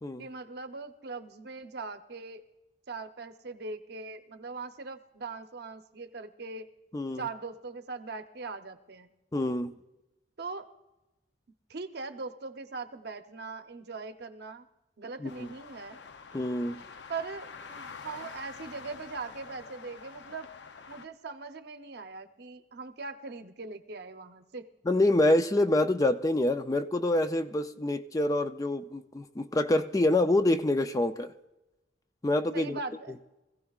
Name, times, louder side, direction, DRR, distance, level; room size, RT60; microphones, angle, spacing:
voice 1, 0.2-2.4 2.9-6.7 7.2-9.1 10.4-10.7 11.7-14.7 15.0-16.0 17.1-20.5 20.9-24.7 32.5-33.1, right 4 dB, 60° right, 8 dB, 0.8 m, -40 dB
voice 2, 6.9-7.2 9.3-9.8 15.2-15.5 16.3-16.8 24.9-31.3 32.2-32.8, left 1 dB, 20° left, 9 dB, 0.4 m, -26 dB
sound 1, 15.3-21.0, left 5 dB, 70° left, 0.6 m, -47 dB
25.0 x 16.0 x 2.4 m, 0.99 s
head